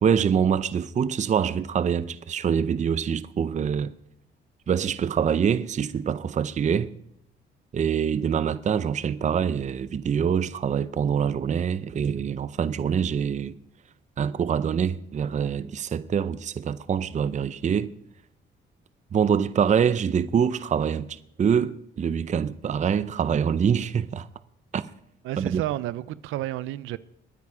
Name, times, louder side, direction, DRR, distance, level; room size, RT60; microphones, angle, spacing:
voice 1, 0.0-3.9 4.7-6.9 7.7-13.6 14.2-17.9 19.1-24.3 24.7-24.9 25.4-25.6, right 7 dB, 35° right, 0.6 m, -25 dB
voice 2, 25.2-27.0, right 14 dB, 90° right, 0.5 m, -31 dB
21.0 x 9.6 x 4.9 m
cardioid pair, 90°, 20 cm